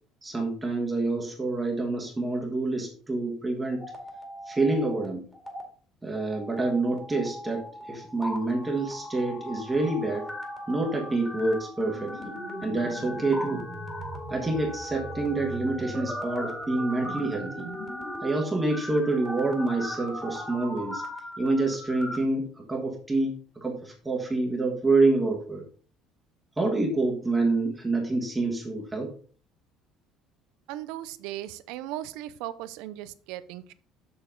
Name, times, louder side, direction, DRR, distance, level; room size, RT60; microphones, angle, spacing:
voice 1, 0.2-3.9 4.5-5.3 6.0-10.3 10.7-13.6 14.3-17.7 18.2-21.0 21.4-25.6 26.6-29.1, right 2 dB, 15° right, 1 dB, 1.5 m, -27 dB
sound 1, 3.7-5.1 5.3-5.6 6.1-22.2, equal, 10° left, 2.2 m, -38 dB
voice 2, 30.7-33.7, right 13 dB, 85° right, 15 dB, 0.6 m, -37 dB
7.1 x 6.8 x 3.8 m, 0.43 s
cardioid pair, 140°, 0 cm